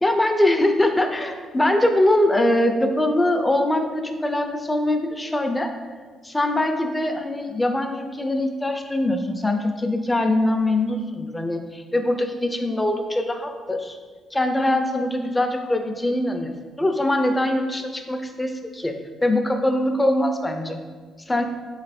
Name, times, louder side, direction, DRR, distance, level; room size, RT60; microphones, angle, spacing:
voice 1, 0.0-5.7 6.2-14.0 14.3-19.0 19.2-20.8 21.3-21.4, left 1 dB, 15° left, 5 dB, 0.5 m, -22 dB
3.8 x 3.2 x 4.1 m, 1.5 s
cardioid pair, 90°, 0 cm